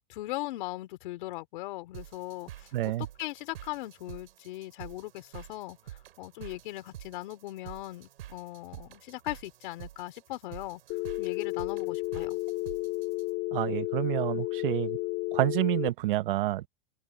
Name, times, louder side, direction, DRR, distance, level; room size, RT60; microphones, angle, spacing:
voice 1, 0.0-2.7 3.2-10.8 11.2-12.4, left 17 dB, 55° left, 4.0 m, -39 dB
sound 1, 1.9-13.3, right 13 dB, 85° right, 7.3 m, -48 dB
voice 2, 2.7-3.1 13.5-15.0 15.3-16.7, right 16 dB, 60° right, 0.8 m, -28 dB
Telephone, 10.9-15.9, left 22 dB, 35° left, 4.0 m, -32 dB
open air
supercardioid pair, 165°, 29 cm